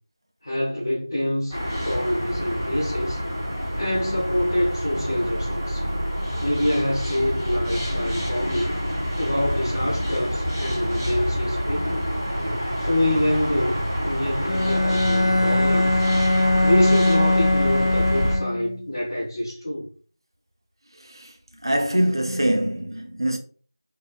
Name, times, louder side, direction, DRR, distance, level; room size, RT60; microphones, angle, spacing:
voice 1, 0.4-3.2 3.8-5.9 6.4-8.8 9.2-12.1 12.8-16.0 16.6-19.9, left 1 dB, 30° left, 1.8 m, -26 dB
sound 1, 1.5-18.4, equal, ahead, 1.2 m, -27 dB
Bowed string instrument, 14.4-18.9, left 2 dB, 90° left, 0.5 m, -21 dB
voice 2, 21.0-21.3 21.6-23.4, right 1 dB, 75° right, 1.0 m, -23 dB
4.2 x 4.0 x 2.5 m
figure-of-eight pair, 175°, 2 cm